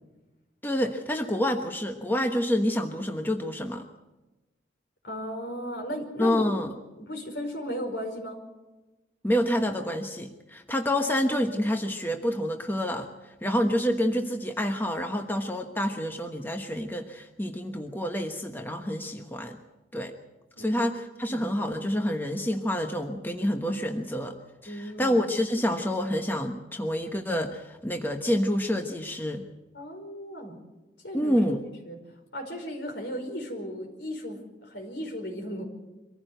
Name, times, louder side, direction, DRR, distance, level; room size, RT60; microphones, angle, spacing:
voice 1, 0.6-3.8 6.2-6.7 9.2-13.1 13.4-19.6 19.9-20.1 20.6-24.4 24.6-29.5 31.1-31.6, equal, 10° left, 4 dB, 1.2 m, -28 dB
voice 2, 5.0-6.4 7.0-8.4 20.5-20.9 21.2-21.5 24.6-25.2 29.7-30.6 31.0-31.5 31.8-32.0 32.3-35.6, equal, 75° left, 4 dB, 5.0 m, -36 dB
24.5 x 14.5 x 8.0 m, 1.1 s
head